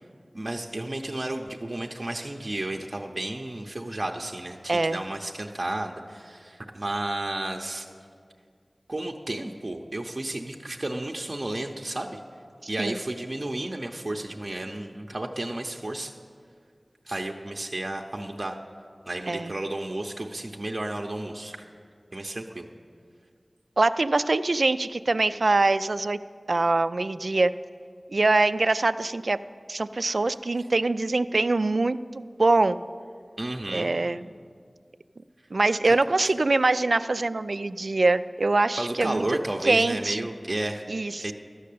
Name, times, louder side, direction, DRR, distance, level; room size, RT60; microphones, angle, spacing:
voice 1, 0.3-7.9 8.9-12.2 12.7-16.1 17.1-18.6 19.1-21.6 22.1-22.7 33.4-33.9 35.8-35.9 38.8-40.8 41.2-41.3, right 1 dB, 50° right, 1 dB, 0.7 m, -32 dB
voice 2, 23.8-26.2 26.5-27.5 28.1-29.4 29.7-32.8 33.7-34.2 35.5-39.2 39.6-40.3 40.9-41.3, right 2 dB, 85° right, 13 dB, 0.3 m, -23 dB
12.5 x 6.5 x 8.4 m, 2.1 s
wide cardioid pair, 55°, 0 cm